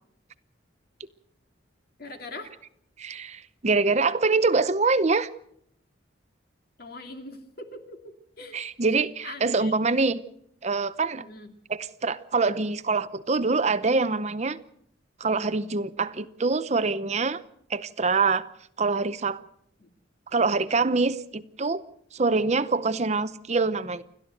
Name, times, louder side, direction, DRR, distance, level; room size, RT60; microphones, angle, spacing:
voice 1, 2.0-2.5 6.8-8.6 8.9-9.7 11.2-11.5 19.8-19.9, left 2 dB, 55° left, 2.7 m, -42 dB
voice 2, 3.0-5.3 8.5-10.2 10.6-11.2 11.7-14.6 15.2-17.4 17.7-18.5 18.8-19.4 20.3-21.8 22.1-24.0, right 3 dB, 35° right, 0.7 m, -25 dB
29.5 x 12.0 x 7.8 m
head